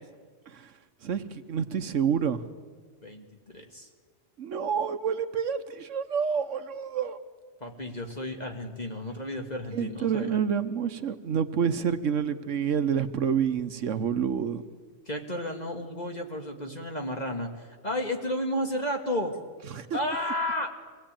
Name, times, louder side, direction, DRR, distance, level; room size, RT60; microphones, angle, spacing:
voice 1, 1.0-2.4 4.4-7.2 9.7-14.6 19.7-19.9, right 7 dB, 75° right, 11 dB, 1.2 m, -28 dB
voice 2, 3.0-3.9 7.6-10.4 15.1-19.4 19.9-20.7, left 1 dB, 35° left, 3 dB, 1.9 m, -32 dB
25.0 x 17.5 x 8.9 m, 1.5 s
omnidirectional pair, 1.3 m